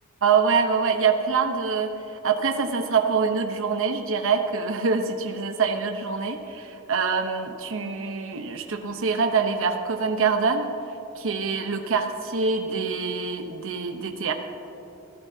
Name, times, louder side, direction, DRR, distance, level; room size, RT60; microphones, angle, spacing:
voice 1, 0.2-10.7 11.2-14.3, right 5 dB, 65° right, 5 dB, 0.9 m, -25 dB
22.5 x 14.5 x 2.8 m, 3.0 s
head